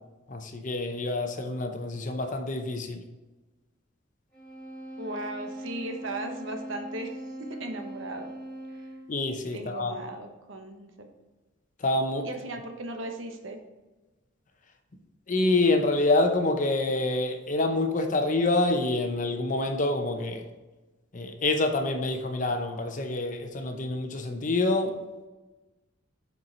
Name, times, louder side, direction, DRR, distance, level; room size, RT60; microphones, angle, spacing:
voice 1, 0.3-3.0 9.1-9.9 11.8-12.3 15.3-20.5 21.1-25.0, left 2 dB, 40° left, 5 dB, 0.7 m, -27 dB
sound 1, 4.3-9.2, right 1 dB, 10° left, 2.4 m, -40 dB
voice 2, 5.0-8.3 9.5-11.1 12.2-13.6, right 2 dB, 70° right, 5 dB, 0.9 m, -37 dB
6.5 x 4.6 x 4.4 m, 1.2 s
head